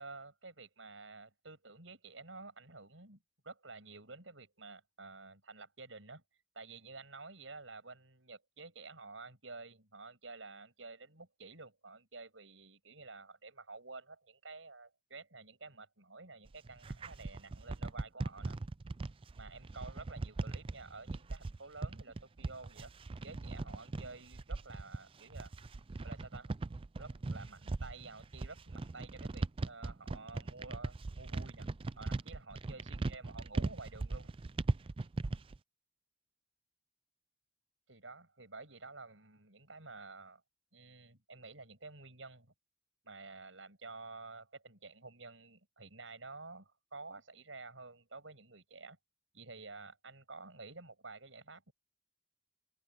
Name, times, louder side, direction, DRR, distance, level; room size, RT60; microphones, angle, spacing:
voice 1, 0.0-6.2 6.5-18.6 19.1-22.9 23.2-25.5 26.0-26.5 27.0-31.7 32.0-34.3 37.9-40.4 40.7-42.5 43.0-49.0 49.3-51.7, right 3 dB, 75° right, 7.4 m, -51 dB
sound 1, 16.5-35.6, right 3 dB, 30° right, 0.4 m, -39 dB
head